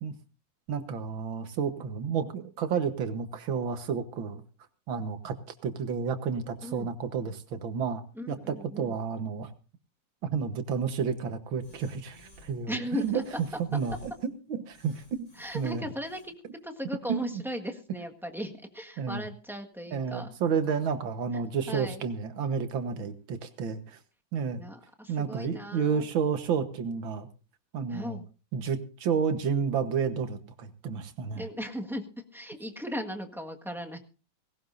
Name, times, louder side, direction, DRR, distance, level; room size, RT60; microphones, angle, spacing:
voice 1, 0.7-4.4 4.9-5.4 5.6-9.5 10.3-13.2 13.7-14.1 14.5-15.3 15.5-15.8 17.1-17.4 19.0-19.3 19.9-24.0 24.3-24.6 25.1-27.3 27.7-28.2 28.5-31.5, right 6 dB, 90° right, 10 dB, 2.0 m, -31 dB
voice 2, 6.6-6.9 8.1-9.0 12.7-13.2 13.7-13.8 15.4-16.3 16.6-20.3 21.7-22.0 24.6-26.1 27.9-28.2 31.3-32.1 32.3-34.0, equal, ahead, 3 dB, 1.3 m, -37 dB
sound 1, 11.6-12.6 12.9-14.3 14.7-16.2, left 1 dB, 50° left, 8.4 m, -55 dB
18.5 x 17.5 x 2.6 m, 0.34 s
omnidirectional pair, 2.1 m